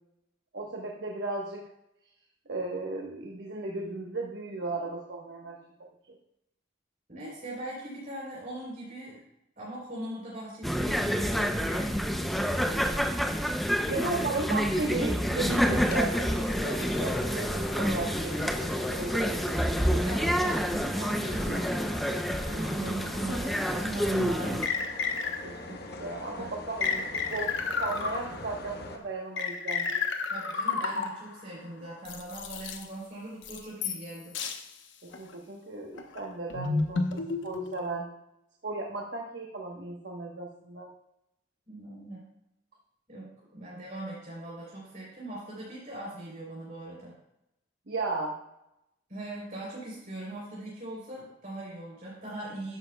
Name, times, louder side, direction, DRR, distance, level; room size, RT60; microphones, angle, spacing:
voice 1, 0.5-1.6 2.5-5.6 13.9-19.6 25.4-30.0 35.0-38.1 38.6-40.9 47.9-48.3, right 2 dB, 60° right, 0 dB, 1.1 m, -35 dB
voice 2, 7.1-9.2 9.6-12.4 13.9-14.4 16.1-16.2 20.0-22.1 22.4-24.7 25.6-25.7 26.4-26.5 30.3-34.4 41.7-42.3 43.1-47.1 49.1-52.8, right 1 dB, 45° right, -6 dB, 3.5 m, -40 dB
sound 1, 10.6-24.7, equal, ahead, 0.5 m, -28 dB
sound 2, 15.7-29.0, left 2 dB, 60° left, 1.1 m, -42 dB
sound 3, 23.6-23.7 24.6-25.7 26.8-28.6 29.4-31.4 32.0-32.8 33.4-34.1 34.3-34.6 35.1-35.3 36.0-37.9, left 4 dB, 80° left, 1.0 m, -31 dB
13.0 x 9.4 x 2.3 m, 0.85 s
head